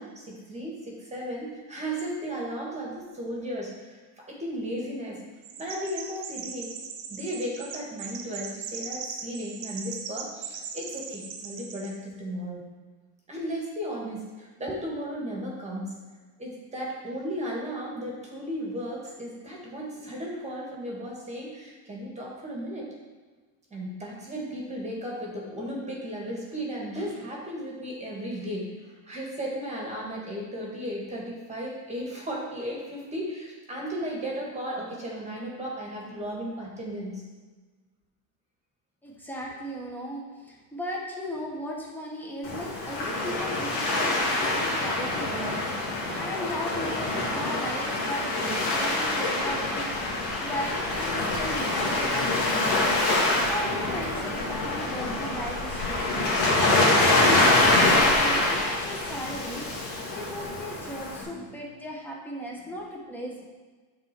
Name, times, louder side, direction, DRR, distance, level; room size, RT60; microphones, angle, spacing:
voice 1, 0.0-5.2 5.6-6.7 7.1-12.6 13.3-16.0 16.4-22.9 23.7-37.3 56.0-56.3 61.0-61.6 62.5-62.8, equal, 15° right, -3 dB, 2.0 m, -35 dB
Chirp tweet, 5.4-12.0, right 6 dB, 65° right, 1.2 m, -39 dB
voice 2, 39.0-56.4 56.8-63.4, equal, 5° left, -3 dB, 1.5 m, -37 dB
Waves surf, 42.4-61.2, left 2 dB, 55° left, 2.5 m, -25 dB
7.6 x 4.1 x 6.1 m, 1.4 s
supercardioid pair, 125°, 47 cm